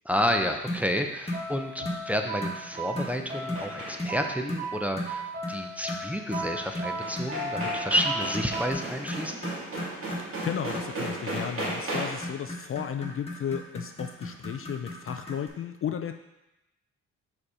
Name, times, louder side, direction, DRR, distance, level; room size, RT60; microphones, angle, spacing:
voice 1, 0.0-9.4, equal, 5° right, 4 dB, 0.5 m, -30 dB
sound 1, 0.7-0.9 1.3-1.5 1.8-2.1 2.4-2.6 3.0-3.2 3.5-3.7 4.0-4.2 4.5-4.7 5.0-5.2 5.4-5.6 5.9-15.5, left 1 dB, 20° left, 1.4 m, -36 dB
sound 2, 1.3-8.7, right 1 dB, 30° right, 1.2 m, -36 dB
sound 3, 2.5-4.3 6.6-6.7 7.0-12.4, right 1 dB, 45° right, 1.8 m, -36 dB
voice 2, 10.2-16.2, left 8 dB, 45° left, 6 dB, 0.4 m, -34 dB
5.2 x 4.3 x 4.8 m, 0.95 s
cardioid pair, 85°, 31 cm